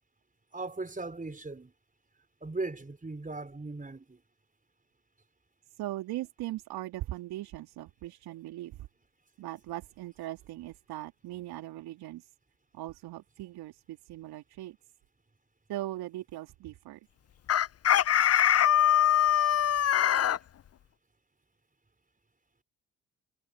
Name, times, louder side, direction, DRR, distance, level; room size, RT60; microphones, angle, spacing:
voice 1, 0.5-1.7 2.4-4.2, right 3 dB, 20° right, 5.0 m, -38 dB
voice 2, 5.8-8.9 9.4-12.3 12.7-14.8 15.7-17.0, right 15 dB, 70° right, 3.6 m, -39 dB
Chicken rooster, 17.5-20.4, left 10 dB, 40° left, 0.7 m, -23 dB
hypercardioid pair, 50°, 39 cm